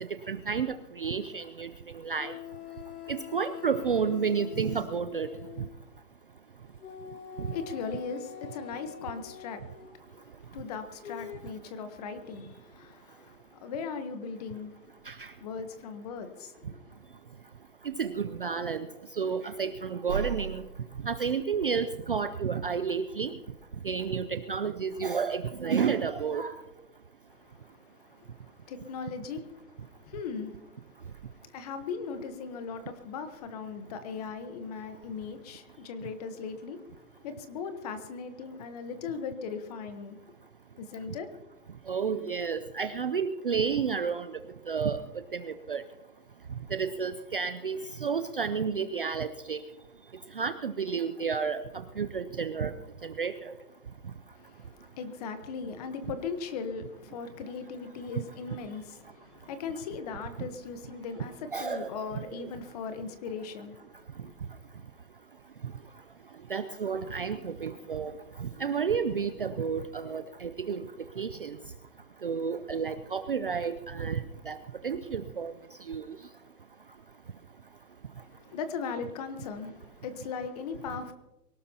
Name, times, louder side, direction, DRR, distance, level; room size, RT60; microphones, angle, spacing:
voice 1, 0.3-1.7 2.0-2.3 3.1-5.3 7.4-7.5 15.1-15.3 17.9-18.9 19.2-20.6 21.0-23.3 23.8-26.5 41.9-44.3 44.7-45.0 45.3-45.8 46.7-49.6 50.4-51.6 52.0-52.7 53.0-53.3 61.5-61.9 62.4-62.5 66.5-68.1 68.4-70.8 71.2-71.5 72.2-74.2 74.5-74.6 74.8-75.5 75.9-76.0, right 6 dB, 35° right, 0.5 m, -31 dB
sound 1, 2.2-5.7 6.8-9.9 11.0-11.4, left 9 dB, 70° left, 2.7 m, -44 dB
voice 2, 7.3-14.9 15.4-16.9 27.3-36.8 37.2-40.2 40.8-41.3 54.3-63.8 64.2-64.3 78.2-81.1, left 5 dB, 25° left, 1.1 m, -39 dB
23.0 x 18.0 x 2.8 m
hypercardioid pair, 155°, 49 cm